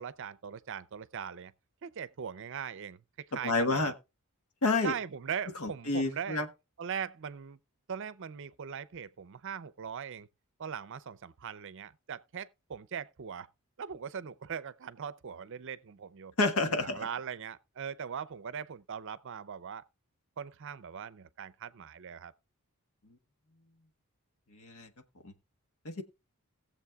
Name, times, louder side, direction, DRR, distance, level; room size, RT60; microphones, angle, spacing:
voice 1, 0.0-1.5 1.8-4.0 4.8-6.5 6.8-7.6 7.9-10.3 10.6-13.5 13.8-16.3 16.7-19.8 20.4-22.3, right 7 dB, 60° right, 0.5 m, -40 dB
voice 2, 3.4-3.9 4.6-4.9 5.6-6.5 16.4-17.1 24.5-24.9 25.2-25.3 25.8-26.0, left 3 dB, 75° left, 1.3 m, -29 dB
19.5 x 7.3 x 2.3 m
head